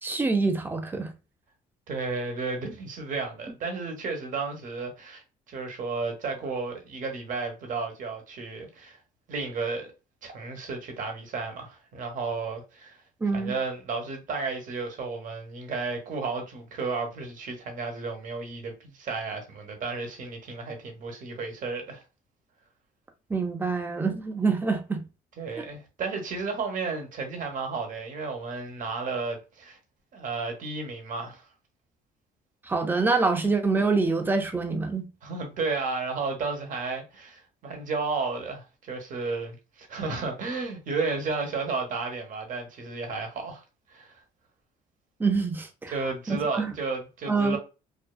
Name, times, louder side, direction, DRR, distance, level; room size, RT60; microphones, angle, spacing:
voice 1, 0.0-1.1 13.2-13.5 23.3-25.0 32.7-35.1 45.2-45.9 46.3-46.7 47.3-47.6, right 4 dB, 10° right, 0.5 m, -26 dB
voice 2, 1.9-9.0 9.3-9.9 10.2-13.0 13.3-22.0 25.4-29.8 30.1-31.4 35.2-43.6 43.9-44.1 45.9-47.6, right 4 dB, 50° right, 0.8 m, -33 dB
2.5 x 2.3 x 2.2 m
cardioid pair, 110°, 17 cm